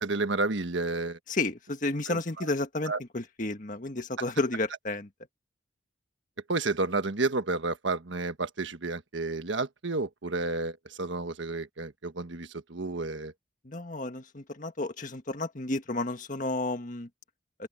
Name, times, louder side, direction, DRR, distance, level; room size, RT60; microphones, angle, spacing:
voice 1, 0.0-1.2 2.1-2.5 2.9-3.0 6.5-13.3, right 3 dB, 85° right, 1.4 m, -31 dB
voice 2, 1.3-5.1 13.7-17.1, left 2 dB, 45° left, 1.8 m, -32 dB
open air
head